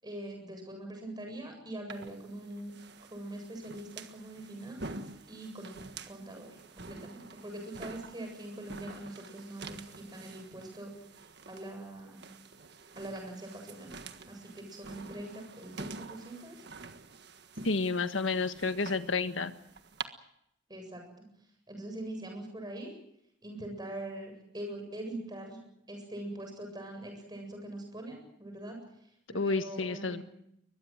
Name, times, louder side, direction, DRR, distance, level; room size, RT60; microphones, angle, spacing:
voice 1, 0.0-2.7 3.1-5.0 5.3-10.9 11.5-12.3 13.0-14.0 14.3-16.6 20.7-21.3 21.7-22.9 23.4-25.6 25.9-28.8 29.3-30.2, right 1 dB, 20° right, 3 dB, 7.9 m, -43 dB
sound 1, 1.9-20.0, right 3 dB, 55° right, 1.6 m, -47 dB
voice 2, 17.6-19.5 29.3-30.2, left 3 dB, 80° left, 10 dB, 1.5 m, -30 dB
23.0 x 21.5 x 7.7 m, 0.76 s
head